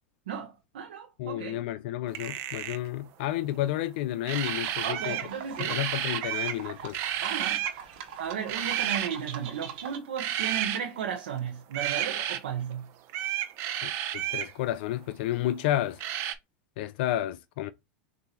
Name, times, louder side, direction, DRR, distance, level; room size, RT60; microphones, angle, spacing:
voice 1, 0.3-1.6 4.8-5.8 7.2-7.7 8.2-12.9, right 8 dB, 85° right, 0.8 m, -35 dB
voice 2, 1.2-5.2 5.6-7.0 13.8-16.0 16.8-17.7, left 13 dB, 70° left, 0.4 m, -31 dB
sound 1, 2.1-2.9 4.2-5.3 5.6-6.6 6.9-7.8 8.5-9.1 10.2-10.8 11.7-12.4 13.1-14.5 16.0-16.3, right 11 dB, 50° right, 0.7 m, -31 dB
sound 2, 4.3-10.0, right 8 dB, 65° right, 1.2 m, -42 dB
6.5 x 2.7 x 2.9 m
hypercardioid pair, 105°, 6 cm